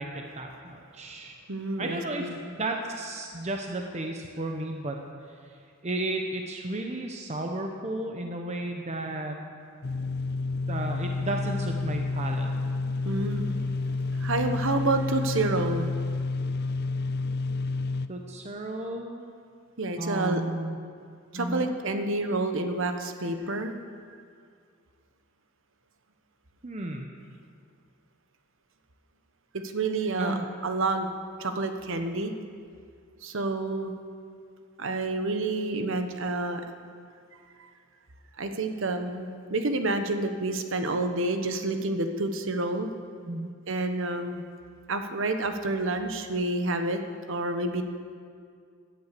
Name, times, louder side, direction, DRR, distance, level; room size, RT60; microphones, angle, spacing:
voice 1, 0.0-1.3 1.8-5.0 5.8-9.4 10.7-12.5 18.1-19.2 20.0-20.8 21.3-21.7 26.6-27.1 30.2-30.5 43.3-43.5, right 1 dB, 35° right, 2 dB, 1.0 m, -33 dB
voice 2, 1.5-2.4 13.0-13.7 14.1-15.9 19.8-20.4 21.3-23.7 29.5-30.4 30.6-31.1 31.4-32.3 33.2-33.9 34.8-36.6 38.4-42.9 43.7-44.4 44.9-47.0 47.3-47.8, right 2 dB, 70° right, 7 dB, 1.2 m, -29 dB
sound 1, 9.8-18.1, left 3 dB, 55° left, 0.5 m, -30 dB
17.0 x 10.5 x 6.8 m, 2.2 s
head